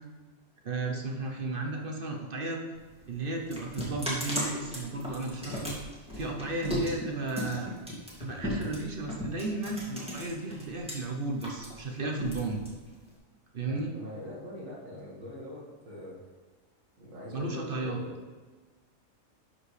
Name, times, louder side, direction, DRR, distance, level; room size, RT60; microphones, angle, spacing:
voice 1, 0.6-2.6 3.1-5.8 6.1-7.8 8.2-12.6 13.5-13.9 17.3-18.0, right 2 dB, 45° right, 1 dB, 0.9 m, -34 dB
sound 1, 2.7-10.9 11.2-13.2, equal, 5° right, 1.9 m, -36 dB
voice 2, 13.5-16.3 17.0-18.2, left 1 dB, 75° right, -5 dB, 2.0 m, -43 dB
11.5 x 5.1 x 3.2 m, 1.3 s
omnidirectional pair, 1.4 m